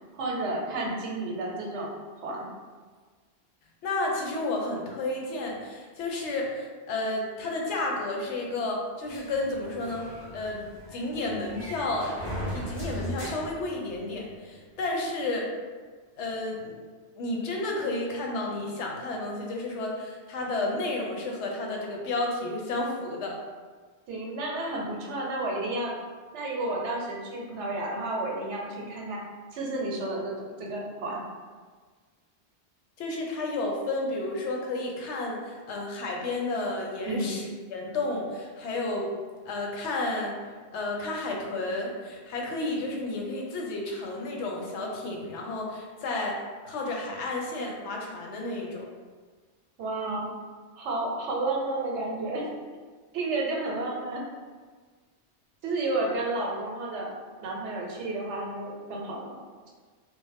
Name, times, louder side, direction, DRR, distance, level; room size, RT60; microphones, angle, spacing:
voice 1, 0.1-2.5 24.1-25.9 26.3-29.2 29.5-31.2 37.1-37.4 49.8-50.3 50.8-52.5 53.1-54.3 55.6-57.1 57.4-59.4, right 2 dB, 85° right, -2 dB, 0.9 m, -31 dB
voice 2, 3.8-10.7 10.9-12.2 12.5-15.5 16.2-16.7 17.2-23.4 33.0-39.1 39.5-40.4 40.7-48.9, left 2 dB, 80° left, 0 dB, 0.9 m, -31 dB
sound 1, 9.1-14.4, equal, 25° left, 0.6 m, -38 dB
2.5 x 2.0 x 3.3 m, 1.5 s
omnidirectional pair, 1.2 m